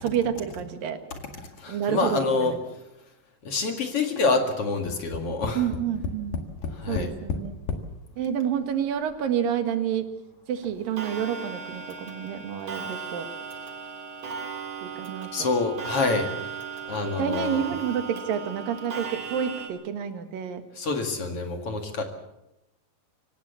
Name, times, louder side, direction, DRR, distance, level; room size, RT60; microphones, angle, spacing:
voice 1, 0.0-1.0 1.7-2.6 5.6-6.4 6.9-7.5 8.2-10.1 10.5-13.3 14.8-15.5 17.2-20.6, right 9 dB, 90° right, 8 dB, 3.3 m, -29 dB
voice 2, 1.6-2.6 3.4-5.7 6.7-7.1 15.3-16.3 16.9-17.6 20.8-22.0, left 3 dB, 45° left, 4 dB, 2.8 m, -26 dB
Tap, 4.9-7.9 8.7-8.8 9.1-9.2, left 4 dB, 90° left, 3.5 m, -32 dB
Clock, 11.0-19.7, right 6 dB, 50° right, 3.4 m, -37 dB
25.0 x 17.0 x 7.0 m, 0.88 s
omnidirectional pair, 3.9 m